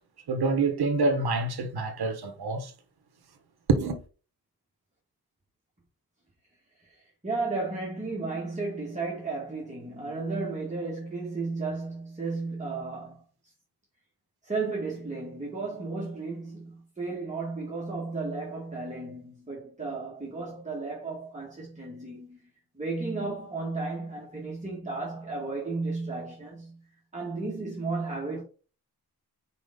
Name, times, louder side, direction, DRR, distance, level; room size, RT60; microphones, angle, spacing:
voice 1, 0.3-2.7 3.7-4.0, right 3 dB, 70° right, 1.4 m, -26 dB
voice 2, 7.2-13.2 14.4-22.5 22.7-26.8 27.1-28.4, right 3 dB, 20° right, 2.2 m, -34 dB
5.1 x 5.0 x 3.9 m
wide cardioid pair, 100°, 39 cm